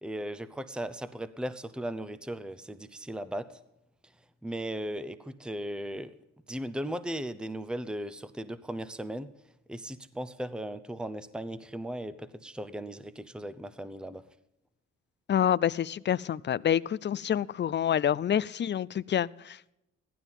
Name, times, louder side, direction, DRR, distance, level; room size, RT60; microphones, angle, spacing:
voice 1, 0.0-3.5 4.4-6.1 6.5-9.3 9.7-14.2, right 1 dB, 5° right, 0.8 m, -37 dB
voice 2, 15.3-19.6, left 9 dB, 35° left, 0.5 m, -27 dB
15.5 x 12.5 x 5.4 m
cardioid pair, 90°, 30 cm